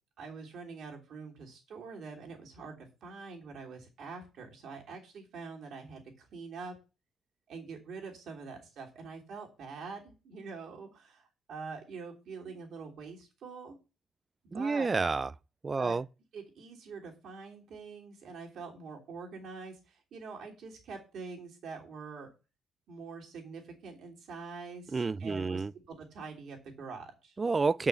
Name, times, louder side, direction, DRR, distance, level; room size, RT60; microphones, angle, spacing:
voice 1, 0.2-6.7 7.5-13.8 14.4-14.9 15.8-15.9 16.3-22.3 22.9-27.3, right 4 dB, 65° right, 3.2 m, -45 dB
voice 2, 14.5-15.3 15.6-16.1 24.9-25.7 27.4-27.9, right 4 dB, 35° right, 0.4 m, -29 dB
6.7 x 5.8 x 6.7 m
supercardioid pair, 55°, 0 cm